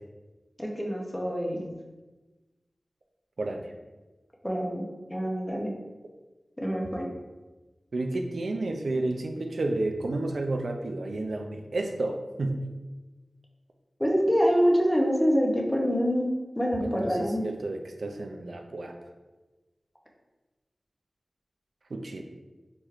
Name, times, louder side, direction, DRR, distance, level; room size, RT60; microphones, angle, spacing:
voice 1, 0.6-1.7 4.4-5.7 6.6-7.1 14.0-17.4, equal, 15° left, -1 dB, 0.7 m, -26 dB
voice 2, 3.4-3.7 7.9-12.6 16.8-18.9 21.9-22.2, right 2 dB, 80° right, 4 dB, 0.3 m, -31 dB
4.4 x 3.0 x 2.4 m, 1.2 s
wide cardioid pair, 75°, 0 cm